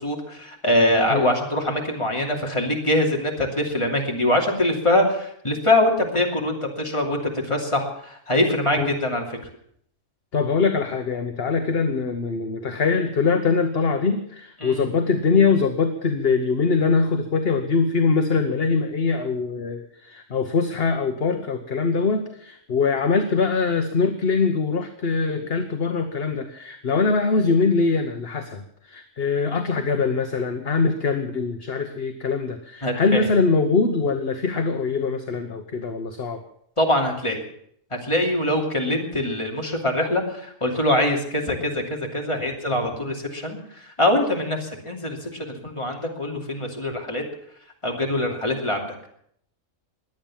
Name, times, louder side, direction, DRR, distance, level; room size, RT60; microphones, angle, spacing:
voice 1, 0.0-9.2 14.6-14.8 32.8-33.3 36.8-37.4 37.9-43.6 43.8-47.2 47.8-49.0, left 1 dB, 20° left, 0 dB, 2.9 m, -23 dB
voice 2, 10.3-36.4, left 4 dB, 50° left, 6 dB, 1.3 m, -23 dB
21.5 x 8.9 x 7.3 m, 0.68 s
omnidirectional pair, 1.4 m